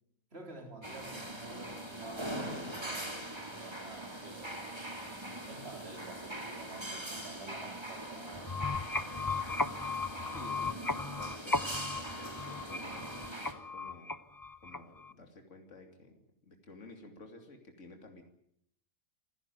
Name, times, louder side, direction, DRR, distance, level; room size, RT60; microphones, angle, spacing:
voice 1, 0.3-3.2 3.5-4.7 5.5-8.5, right 2 dB, 45° right, 2 dB, 4.2 m, -50 dB
sound 1, 0.8-13.5, right 1 dB, 20° right, 3.1 m, -42 dB
sound 2, 8.3-15.1, left 3 dB, 20° left, 0.8 m, -36 dB
voice 2, 10.3-13.1 13.7-14.2 14.6-18.2, left 2 dB, 60° left, 4 dB, 3.1 m, -53 dB
27.5 x 16.5 x 9.2 m, 0.71 s
omnidirectional pair, 1.4 m